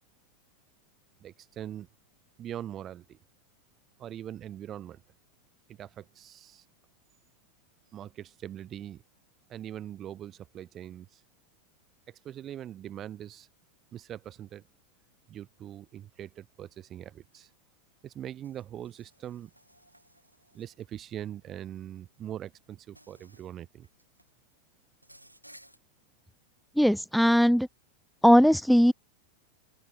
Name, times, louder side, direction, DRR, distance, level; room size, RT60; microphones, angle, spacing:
voice 1, 1.2-1.9 2.4-3.2 4.0-5.0 5.7-6.6 7.9-9.0 9.5-11.2 12.1-13.5 13.9-14.6 15.3-17.5 18.0-19.5 20.5-23.9, right 11 dB, 30° right, 2.8 m, -42 dB
Insect, 17.3-17.5 18.4-21.0 22.1-22.3 22.9-23.5 23.8-24.3 25.0-25.8, right 1 dB, 90° right, 7.3 m, -58 dB
voice 2, 26.8-27.7 28.2-28.9, equal, ahead, 0.4 m, -19 dB
open air
figure-of-eight pair, 90°, 0 cm